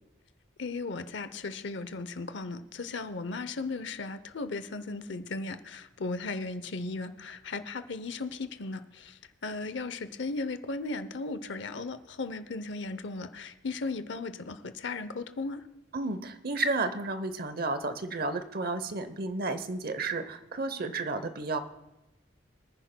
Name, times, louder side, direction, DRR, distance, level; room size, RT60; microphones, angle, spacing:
voice 1, 0.6-15.6, left 3 dB, 65° left, 12 dB, 0.7 m, -36 dB
voice 2, 15.9-21.6, right 3 dB, 50° right, 11 dB, 0.8 m, -32 dB
24.5 x 10.0 x 2.2 m, 0.99 s
head